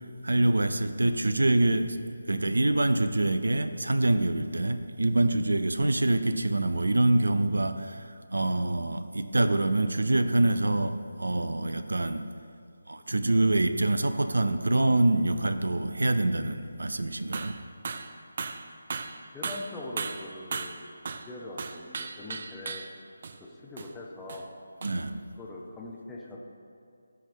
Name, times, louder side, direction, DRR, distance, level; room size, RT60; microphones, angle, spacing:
voice 1, 0.2-2.0 2.3-12.3 12.9-17.6 24.8-25.3, right 2 dB, 90° right, 11 dB, 0.5 m, -25 dB
sound 1, 17.3-17.6 17.8-18.1 18.4-21.3 21.6-23.0 23.2-23.4 23.8-23.9 24.3-24.5 24.8-25.0, right 4 dB, 40° right, 0.4 m, -36 dB
voice 2, 19.3-20.9 21.3-22.8 23.4-24.5 25.4-26.4, left 2 dB, 5° left, -4 dB, 0.7 m, -41 dB
15.5 x 5.7 x 3.2 m, 2.3 s
figure-of-eight pair, 170°, 0 cm